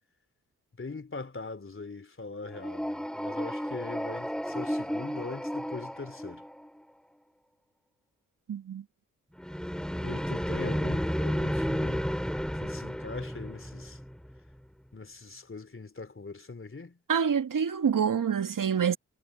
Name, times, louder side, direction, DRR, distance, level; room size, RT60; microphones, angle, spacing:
voice 1, 0.8-6.4 10.0-12.1 12.6-14.0 14.9-17.0, left 3 dB, 35° left, 3.3 m, -41 dB
sound 1, 2.5-6.8 9.4-14.4, equal, ahead, 3.8 m, -32 dB
voice 2, 8.5-8.8 17.1-19.0, right 7 dB, 60° right, 2.1 m, -26 dB
supercardioid pair, 45°, 36 cm